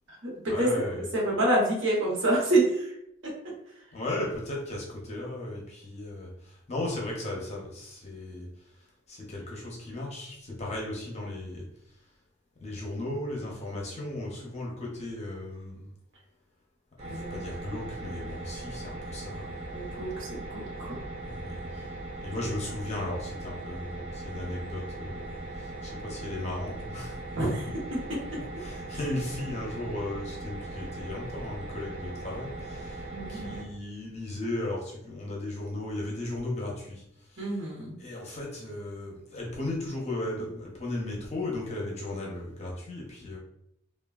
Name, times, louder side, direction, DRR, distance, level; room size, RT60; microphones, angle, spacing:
voice 1, 0.5-1.1 3.9-8.5 9.1-11.6 12.6-15.9 17.0-20.1 21.2-21.9 22.2-27.6 28.6-37.7 38.0-43.4, left 1 dB, 30° left, -2 dB, 0.6 m, -36 dB
voice 2, 1.1-2.9 17.1-17.4 19.7-21.0 27.3-27.7 33.1-33.6 37.4-38.0, right 1 dB, 65° right, -3 dB, 1.0 m, -27 dB
sound 1, 17.0-33.6, right 2 dB, 25° right, 0.7 m, -39 dB
3.1 x 2.2 x 2.3 m, 0.78 s
head